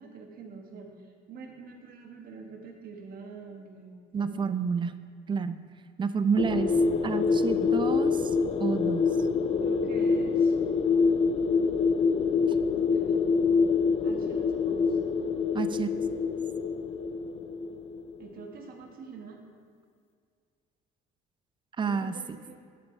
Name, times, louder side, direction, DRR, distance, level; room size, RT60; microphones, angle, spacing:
voice 1, 0.0-4.5 9.6-10.6 12.7-13.2 14.0-15.0 18.2-19.4 21.8-22.6, right 5 dB, 60° right, 2 dB, 1.4 m, -46 dB
voice 2, 4.1-4.9 5.3-5.6 6.0-6.7 7.0-8.3 8.6-9.0 15.5-15.9 21.8-22.1, right 5 dB, 30° right, 12 dB, 0.5 m, -29 dB
sound 1, 6.4-18.2, left 5 dB, 40° left, 0.4 m, -26 dB
10.0 x 6.4 x 4.5 m, 2.2 s
cardioid pair, 110°, 17 cm